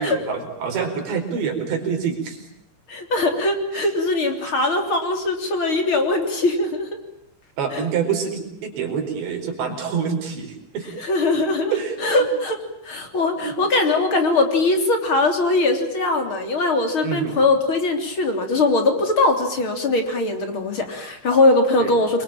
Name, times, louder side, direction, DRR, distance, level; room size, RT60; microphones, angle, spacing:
voice 1, 0.0-2.5 3.7-3.9 7.6-10.9 11.7-12.0 13.4-13.6 17.0-17.4 21.8-21.9, right 6 dB, 65° right, 3 dB, 6.6 m, -26 dB
voice 2, 2.9-6.9 7.7-7.9 11.0-11.7 12.0-12.6 12.8-22.2, left 2 dB, 30° left, 6 dB, 3.5 m, -21 dB
28.5 x 23.5 x 8.9 m, 0.74 s
omnidirectional pair, 5.5 m